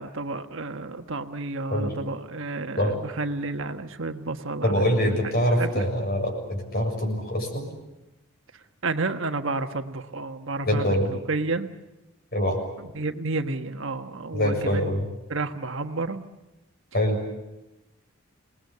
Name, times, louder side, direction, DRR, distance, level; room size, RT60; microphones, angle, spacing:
voice 1, 0.0-5.2 5.5-5.9 8.8-11.0 11.3-11.7 12.8-14.9 15.3-16.3, right 3 dB, 65° right, 7 dB, 1.4 m, -31 dB
voice 2, 4.6-7.7 10.7-11.1 12.3-12.6 14.3-15.0 16.9-17.2, equal, 45° left, 3 dB, 6.8 m, -24 dB
28.0 x 20.0 x 8.5 m, 0.98 s
head